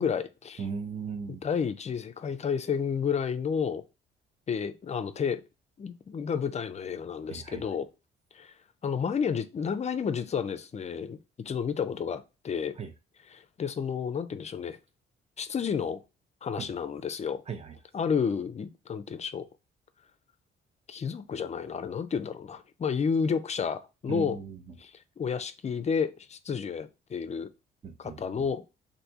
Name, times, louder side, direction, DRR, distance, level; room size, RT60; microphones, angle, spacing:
voice 1, 0.0-0.6 1.4-3.8 4.5-5.4 5.8-7.9 8.3-8.5 8.8-11.2 11.4-12.8 13.3-14.8 15.4-16.0 16.4-17.4 17.9-19.5 20.9-24.4 24.8-27.5 28.0-28.6, left 6 dB, 35° left, 0.4 m, -31 dB
voice 2, 0.6-1.4 7.3-7.6 12.8-12.9 16.6-16.7 17.5-17.8 24.1-24.6 27.8-28.2, right 6 dB, 30° right, 0.8 m, -37 dB
3.4 x 2.6 x 2.8 m
cardioid pair, 90°, 20 cm